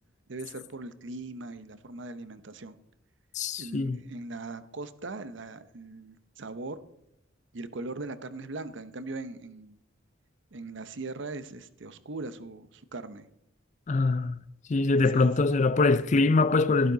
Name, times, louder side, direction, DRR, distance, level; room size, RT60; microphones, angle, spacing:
voice 1, 0.3-2.8 3.6-6.8 7.5-9.8 10.5-13.3 14.9-15.3, right 2 dB, 60° right, 0.7 m, -40 dB
voice 2, 3.4-4.0 13.9-14.4 14.7-16.9, left 3 dB, 35° left, 0.4 m, -23 dB
12.0 x 11.5 x 3.9 m
head